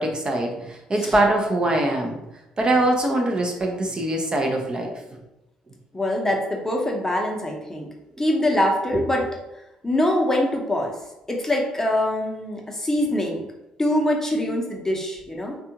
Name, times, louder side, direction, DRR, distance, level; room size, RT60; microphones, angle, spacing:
voice 1, 0.0-2.2 2.6-5.2 8.9-9.0, right 1 dB, 30° right, 1 dB, 0.6 m, -23 dB
voice 2, 5.9-7.9 8.2-9.2 9.8-11.0 11.3-13.5 13.8-15.6, left 1 dB, 15° left, 0 dB, 0.8 m, -24 dB
3.4 x 2.3 x 2.8 m, 0.94 s
figure-of-eight pair, 45°, 3 cm